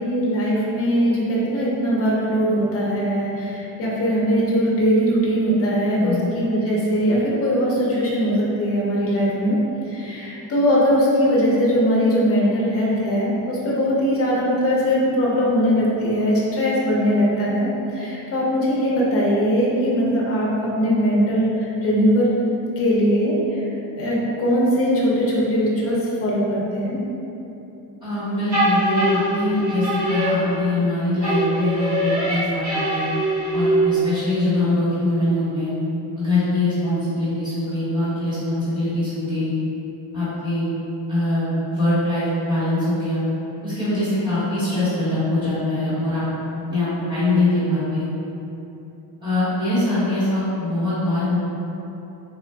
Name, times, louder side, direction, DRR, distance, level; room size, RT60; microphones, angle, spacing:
voice 1, 0.0-9.6 9.9-22.3 22.8-23.4 23.9-27.0, equal, 30° left, -5 dB, 0.5 m, -20 dB
voice 2, 6.0-6.3 28.0-33.0 33.5-35.7 36.2-39.5 40.1-40.6 41.1-43.2 43.6-46.2 46.7-48.1 49.2-51.4, left 2 dB, 10° right, -15 dB, 1.2 m, -23 dB
sound 1, 28.5-30.9 31.2-34.1, right 1 dB, 70° right, 1.4 m, -22 dB
3.6 x 2.4 x 2.2 m, 2.9 s
cardioid pair, 170°, 44 cm